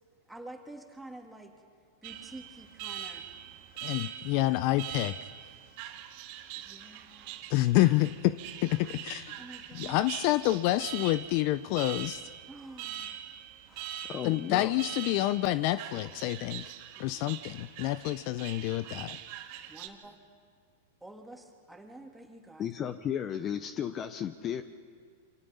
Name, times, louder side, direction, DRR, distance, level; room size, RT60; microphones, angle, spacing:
voice 1, 0.2-1.6 2.0-3.3 6.6-7.8 9.4-10.4 12.5-13.3 13.7-14.3 16.9-17.3 19.6-20.1 21.0-22.7, right 2 dB, 5° right, 1 dB, 3.2 m, -49 dB
Alarm, 2.0-19.9, right 11 dB, 55° right, 2.2 m, -43 dB
voice 2, 3.8-5.3 7.5-8.4 8.6-9.3 9.7-12.3 14.2-16.7 17.0-19.2, left 16 dB, 50° left, 15 dB, 0.7 m, -28 dB
voice 3, 14.1-14.7 22.6-24.6, left 9 dB, 30° left, 10 dB, 1.0 m, -34 dB
28.5 x 26.5 x 5.6 m, 2.1 s
hypercardioid pair, 115°, 0 cm